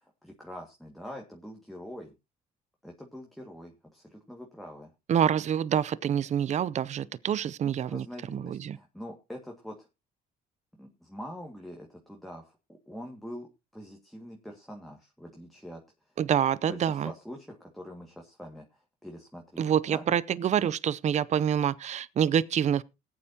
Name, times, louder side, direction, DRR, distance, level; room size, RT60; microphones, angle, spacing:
voice 1, 0.2-2.1 2.8-4.9 7.8-9.9 10.8-15.8 16.7-20.0, equal, ahead, 2.0 m, -44 dB
voice 2, 5.1-8.8 16.2-17.1 19.6-22.8, right 9 dB, 45° right, 0.6 m, -27 dB
19.5 x 8.8 x 2.9 m
cardioid pair, 110°, 17 cm